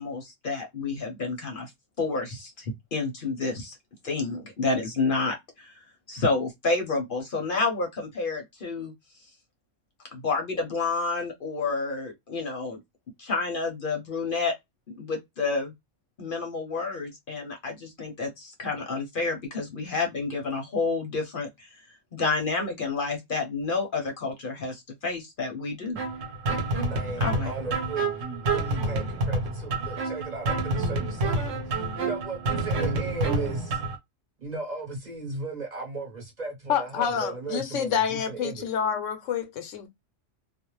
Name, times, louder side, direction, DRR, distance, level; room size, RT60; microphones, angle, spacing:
voice 1, 0.0-1.7 2.0-3.8 4.0-8.9 10.1-12.8 13.2-14.5 14.9-15.7 16.2-21.7 22.1-26.0 27.2-27.5, left 3 dB, 50° left, 0.8 m, -29 dB
sound 1, 26.0-34.0, right 2 dB, 90° right, 1.1 m, -28 dB
voice 2, 26.8-33.8 34.4-38.7, right 3 dB, 40° right, 0.9 m, -36 dB
voice 3, 36.7-39.9, left 8 dB, 80° left, 1.0 m, -28 dB
2.4 x 2.1 x 3.0 m
omnidirectional pair, 1.3 m